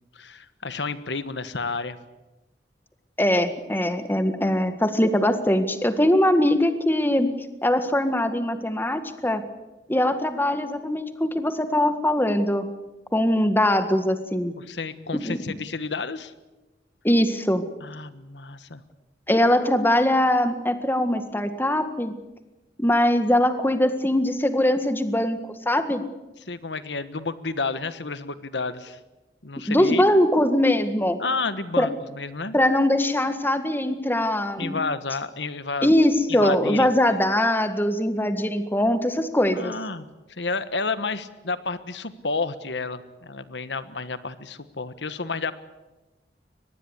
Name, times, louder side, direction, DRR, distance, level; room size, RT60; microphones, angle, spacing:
voice 1, 0.1-2.0 14.6-16.3 17.8-18.8 26.5-29.0 29.4-30.0 31.2-32.5 34.6-35.9 36.3-36.9 39.5-45.5, left 4 dB, 85° left, 12 dB, 1.4 m, -31 dB
voice 2, 3.2-7.3 7.6-9.4 9.9-12.6 13.1-14.5 15.3-15.4 17.0-17.6 19.3-22.1 22.8-25.4 25.6-26.0 29.7-31.2 31.8-31.9 32.5-34.8 35.8-39.7, left 1 dB, 10° left, 9 dB, 1.7 m, -21 dB
24.0 x 20.5 x 8.2 m, 1.1 s
head